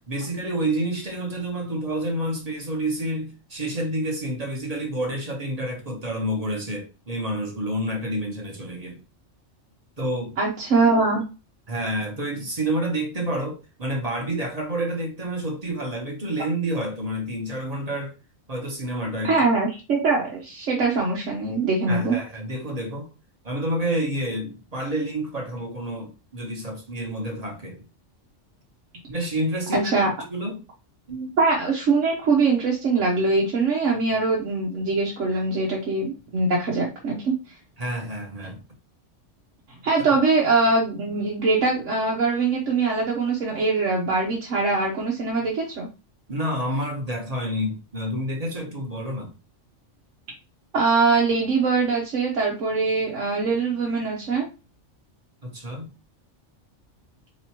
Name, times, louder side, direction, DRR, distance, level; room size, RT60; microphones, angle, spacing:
voice 1, 0.1-9.0 10.0-10.4 11.7-18.1 18.5-19.3 21.9-23.1 23.4-27.8 29.1-29.9 30.3-30.6 31.1-31.4 37.8-38.6 46.3-49.3 55.4-55.9, right 1 dB, 35° right, 1.1 m, -29 dB
voice 2, 10.4-11.2 19.2-22.2 29.7-30.1 31.4-37.3 39.8-45.9 50.7-54.5, right 3 dB, 80° right, 1.3 m, -22 dB
4.3 x 3.2 x 2.9 m
omnidirectional pair, 1.3 m